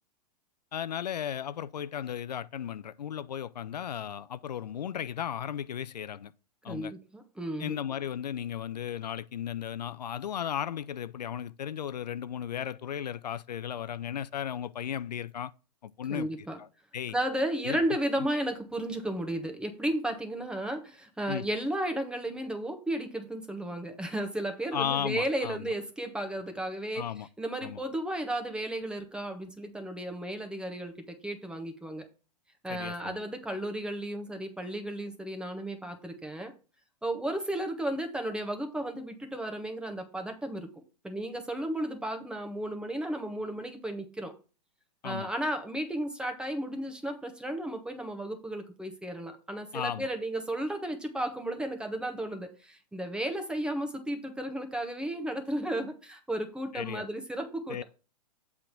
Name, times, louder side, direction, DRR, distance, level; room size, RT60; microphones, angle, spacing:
voice 1, 0.7-6.3 6.6-6.9 7.6-15.5 15.8-16.7 16.9-17.1 17.6-17.8 21.3-21.5 24.7-25.7 26.9-27.3 27.6-27.8 32.7-33.2 45.0-45.3 49.7-50.1 56.7-57.1 57.7-57.8, left 9 dB, 85° left, 0.5 m, -35 dB
voice 2, 6.7-7.8 16.1-16.6 17.1-27.0 27.4-32.1 32.6-36.5 37.0-40.7 41.0-44.3 45.0-57.8, right 1 dB, 5° right, 1.2 m, -34 dB
7.6 x 3.5 x 5.8 m
hypercardioid pair, 115°, 21 cm